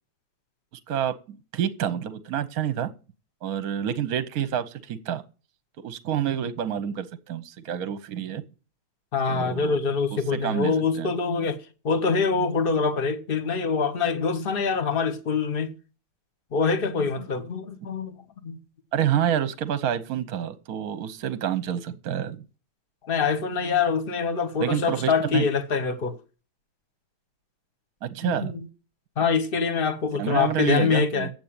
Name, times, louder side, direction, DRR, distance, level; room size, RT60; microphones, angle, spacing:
voice 1, 0.9-2.9 3.4-5.2 5.8-8.4 9.3-9.8 10.3-11.1 18.9-22.4 24.6-25.5 28.0-28.6 30.2-31.3, right 9 dB, 55° right, 1.1 m, -28 dB
voice 2, 9.1-15.7 16.5-18.2 18.4-18.6 23.0-26.2 28.2-28.7 29.2-31.3, left 5 dB, 40° left, 0.8 m, -25 dB
8.2 x 7.9 x 8.7 m
omnidirectional pair, 2.2 m